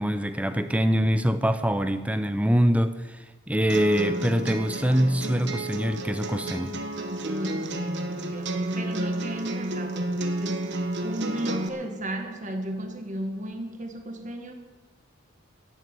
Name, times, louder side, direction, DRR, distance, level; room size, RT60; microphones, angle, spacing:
voice 1, 0.0-6.8, equal, 5° right, 10 dB, 0.6 m, -24 dB
sound 1, 3.7-11.7, right 1 dB, 50° right, 1.5 m, -31 dB
voice 2, 7.3-10.7 11.0-14.5, right 1 dB, 35° right, 4 dB, 1.8 m, -34 dB
14.0 x 7.7 x 9.9 m, 1.3 s
head